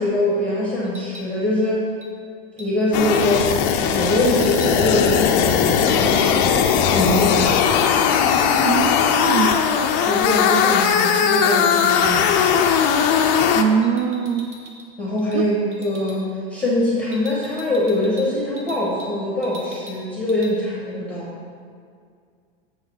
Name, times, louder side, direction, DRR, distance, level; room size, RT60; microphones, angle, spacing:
voice 1, 0.0-1.9 2.6-3.5 3.8-7.8 10.1-12.3 15.0-16.2 16.5-21.3, left 1 dB, 5° left, -5 dB, 0.9 m, -23 dB
sound 1, 0.8-1.3 2.0-2.2 2.6-2.9 4.3-7.2 7.4-7.6 7.8-9.2 9.5-11.5 11.9-12.0 12.6-12.8 13.8-14.9 15.2-15.4 15.7-16.2 17.1-19.1 19.4-20.0 20.3-20.5, left 1 dB, 20° right, 0.7 m, -43 dB
sound 2, 2.9-13.6, left 7 dB, 35° left, 0.4 m, -18 dB
voice 2, 8.6-9.7 13.5-14.5 15.3-15.5, right 7 dB, 55° right, 9 dB, 0.4 m, -22 dB
7.4 x 4.1 x 5.9 m, 2.2 s
supercardioid pair, 160°, 32 cm